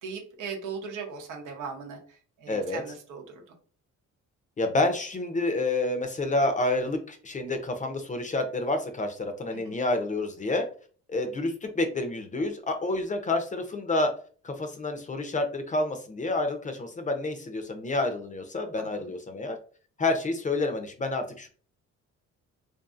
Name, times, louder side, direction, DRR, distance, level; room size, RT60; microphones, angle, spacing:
voice 1, 0.0-3.4 9.5-9.8 18.8-19.1, right 5 dB, 85° right, 2 dB, 0.8 m, -39 dB
voice 2, 2.5-2.8 4.6-10.7 11.1-14.1 14.4-19.6 20.0-21.5, left 2 dB, 25° left, 6 dB, 0.5 m, -28 dB
2.6 x 2.5 x 2.4 m, 0.42 s
cardioid pair, 90°, 30 cm